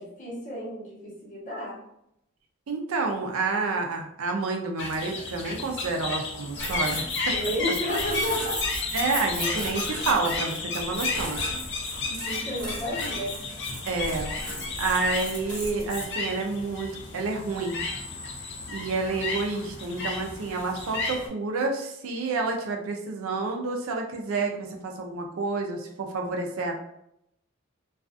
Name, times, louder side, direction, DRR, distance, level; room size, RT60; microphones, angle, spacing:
voice 1, 0.0-1.8 7.3-8.6 9.1-9.5 12.1-13.3, equal, 40° left, -6 dB, 1.0 m, -32 dB
voice 2, 2.7-7.3 8.9-11.4 12.4-12.5 13.9-17.8 18.7-26.7, right 3 dB, 90° right, 2 dB, 0.4 m, -29 dB
sound 1, 4.8-21.3, left 3 dB, 55° left, 0.5 m, -33 dB
sound 2, 6.6-16.0, equal, 5° left, 1.2 m, -36 dB
2.3 x 2.3 x 2.4 m, 0.79 s
head